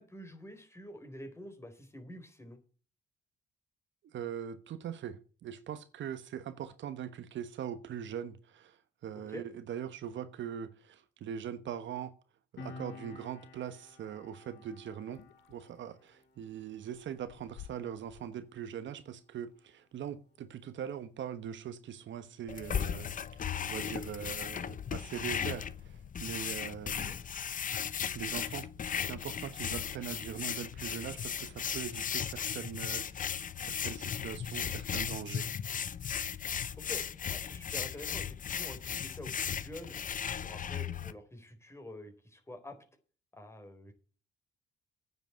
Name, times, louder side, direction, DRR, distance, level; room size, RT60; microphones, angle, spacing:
voice 1, 0.0-2.6 9.3-9.4 26.9-27.2 36.9-37.0 37.3-39.9 40.4-42.8 43.3-43.9, left 1 dB, 15° left, 4.0 m, -47 dB
voice 2, 4.1-12.2 12.5-15.2 15.5-27.2 28.1-28.7 29.0-35.5, right 9 dB, 70° right, 1.2 m, -41 dB
Piano, 12.6-19.6 19.9-20.1, left 3 dB, 60° left, 5.1 m, -53 dB
sound 1, 15.1-16.2 16.8-18.2, left 12 dB, 90° left, 0.8 m, -53 dB
sound 2, 22.5-41.1, left 8 dB, 40° left, 0.8 m, -36 dB
9.5 x 7.9 x 8.0 m
cardioid pair, 90°, 20 cm